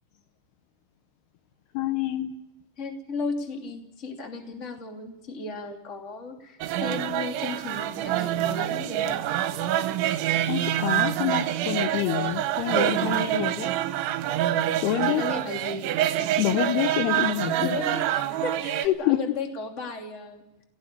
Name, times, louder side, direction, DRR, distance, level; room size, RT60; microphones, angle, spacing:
voice 1, 1.7-2.3 10.5-13.7 14.8-15.2 16.4-17.8 18.8-19.2, left 13 dB, 75° left, 8 dB, 2.6 m, -27 dB
voice 2, 2.8-9.5 15.0-16.0 17.5-20.4, left 4 dB, 20° left, 3 dB, 2.3 m, -35 dB
sound 1, 6.6-18.9, right 12 dB, 85° right, 3.4 m, -26 dB
18.0 x 16.0 x 9.7 m, 0.88 s
omnidirectional pair, 5.3 m